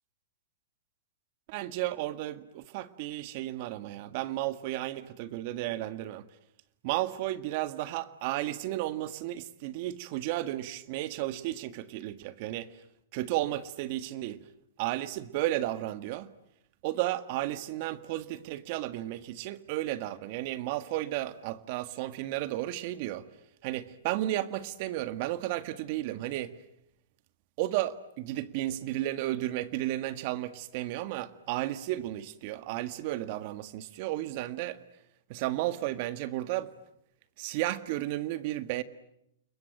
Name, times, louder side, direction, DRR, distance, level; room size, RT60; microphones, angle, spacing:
voice 1, 1.5-6.3 6.8-12.8 13.1-14.4 14.8-16.3 16.8-23.3 23.6-26.6 27.6-34.8 35.3-36.7 37.4-38.8, right 15 dB, 45° right, 1.7 m, -33 dB
29.0 x 22.0 x 9.0 m
hypercardioid pair, 140°, 0 cm